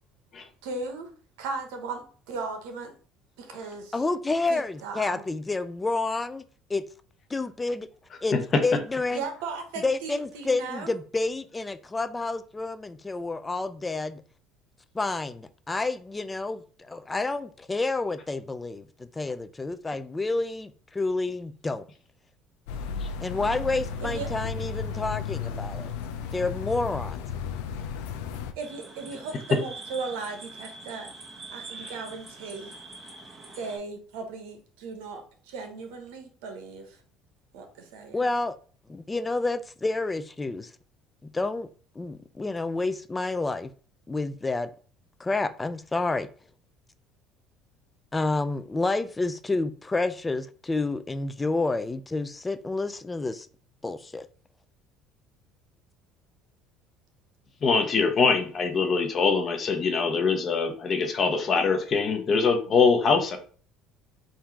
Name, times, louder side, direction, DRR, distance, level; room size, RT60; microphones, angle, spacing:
voice 1, 0.6-1.1 1.4-2.9 3.4-4.0 4.5-5.2 9.1-11.0 24.0-24.3 28.6-31.1 31.5-32.7 33.6-37.0 37.5-38.3, right 4 dB, 90° right, 0.9 m, -37 dB
voice 2, 3.9-6.4 6.7-6.8 7.3-7.9 8.2-9.2 9.8-14.2 14.9-21.9 23.2-25.9 26.3-27.3 38.1-38.5 38.9-40.7 41.2-41.7 42.0-43.7 44.1-44.7 45.2-46.3 48.1-53.5 53.8-54.3, left 3 dB, 15° left, 0.4 m, -29 dB
sound 1, 22.7-28.5, left 6 dB, 90° left, 0.5 m, -34 dB
sound 2, 28.6-33.8, right 3 dB, 20° right, 1.3 m, -44 dB
voice 3, 57.6-63.4, left 5 dB, 40° left, 0.9 m, -23 dB
3.7 x 2.7 x 4.5 m
supercardioid pair, 105°, 0 cm